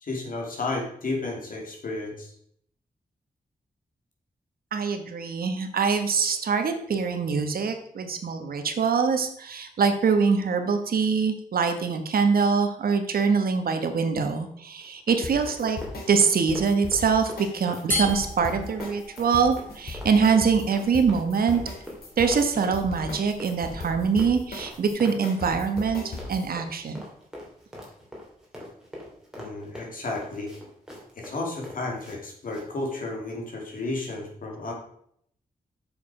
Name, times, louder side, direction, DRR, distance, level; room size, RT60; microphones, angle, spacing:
voice 1, 0.0-2.3 29.3-30.5 31.2-34.7, left 2 dB, 65° left, 0 dB, 2.5 m, -32 dB
voice 2, 4.7-15.8 16.1-21.6 22.2-27.0, right 5 dB, 75° right, 7 dB, 1.2 m, -24 dB
Run, 14.8-32.2 32.5-32.7, left 1 dB, 5° right, 2.8 m, -43 dB
sound 1, 15.2-26.5, left 3 dB, 85° left, 2.8 m, -38 dB
sound 2, 17.9-24.9, left 1 dB, 10° left, 2.4 m, -38 dB
7.7 x 6.6 x 4.9 m, 0.67 s
wide cardioid pair, 130°, 15 cm